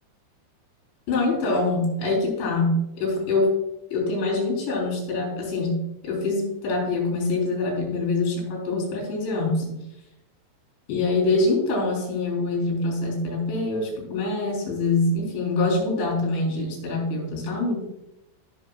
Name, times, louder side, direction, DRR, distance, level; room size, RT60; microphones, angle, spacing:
voice 1, 1.1-3.5 3.9-9.8 10.9-17.9, left 2 dB, 75° left, -1 dB, 5.8 m, -25 dB
15.5 x 6.7 x 2.4 m, 0.88 s
omnidirectional pair, 5.3 m